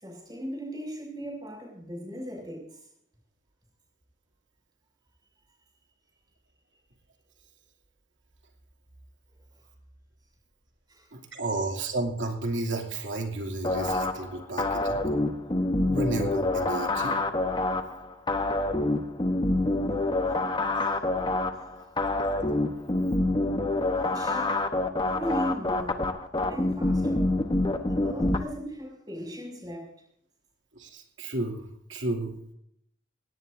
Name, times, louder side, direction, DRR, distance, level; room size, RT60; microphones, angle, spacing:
voice 1, 0.0-2.8 10.9-11.1 20.8-21.0 24.1-24.6 25.1-26.1 26.5-27.4 27.8-29.9, equal, 20° right, 0 dB, 6.3 m, -37 dB
voice 2, 11.1-15.0 15.8-17.2 30.8-31.6 31.9-32.4, right 2 dB, 80° right, 1 dB, 2.7 m, -32 dB
sound 1, 13.6-28.4, left 2 dB, 25° left, 1.0 m, -27 dB
19.5 x 17.5 x 2.7 m, 0.73 s
head